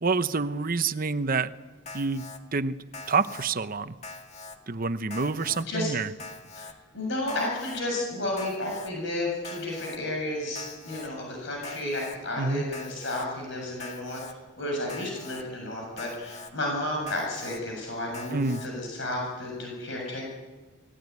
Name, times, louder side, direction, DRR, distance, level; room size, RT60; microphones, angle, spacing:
voice 1, 0.0-1.5 1.9-2.2 2.5-2.8 3.1-3.9 4.7-6.1 12.4-12.6 18.3-18.6, right 4 dB, 45° right, 12 dB, 0.9 m, -27 dB
Alarm, 1.9-2.4 2.9-3.5 4.0-4.6 5.1-5.6 6.2-6.7 7.3-7.8 8.4-8.9 9.4-10.0 10.6-11.1 11.6-12.2 12.7-13.3 13.8-14.3 14.9-15.4 16.0-16.5 17.1-17.6 18.1-18.7, left 3 dB, 35° left, 2.1 m, -43 dB
voice 2, 6.6-14.2 14.6-20.2, left 1 dB, 65° left, -1 dB, 7.2 m, -32 dB
28.5 x 20.0 x 9.6 m, 1.3 s
head